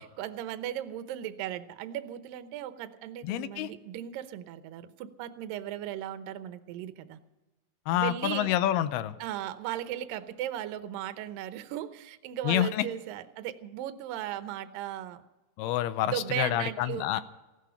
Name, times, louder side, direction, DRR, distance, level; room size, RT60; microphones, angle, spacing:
voice 1, 0.0-7.2 7.9-8.5 9.2-15.2 16.0-17.2, right 12 dB, 75° right, 10 dB, 2.2 m, -37 dB
voice 2, 3.2-3.7 7.9-9.2 12.4-12.9 15.6-17.2, left 12 dB, 80° left, 13 dB, 2.5 m, -28 dB
17.0 x 13.0 x 5.8 m, 1.1 s
omnidirectional pair, 4.8 m